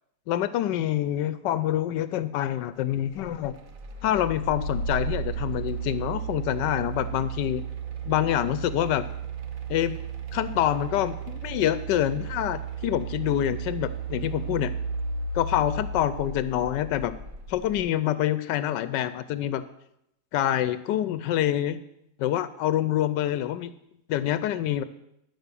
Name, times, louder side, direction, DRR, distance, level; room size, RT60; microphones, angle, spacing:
voice 1, 0.3-3.6 4.0-7.6 8.1-9.1 9.7-10.0 10.3-14.7 15.3-17.2 17.5-19.6 20.3-21.8 22.2-23.7 24.1-24.8, left 12 dB, 85° left, 14 dB, 1.2 m, -26 dB
sound 1, 3.1-17.8, right 5 dB, 55° right, 1.5 m, -34 dB
13.5 x 6.2 x 6.8 m, 0.81 s
omnidirectional pair, 1.9 m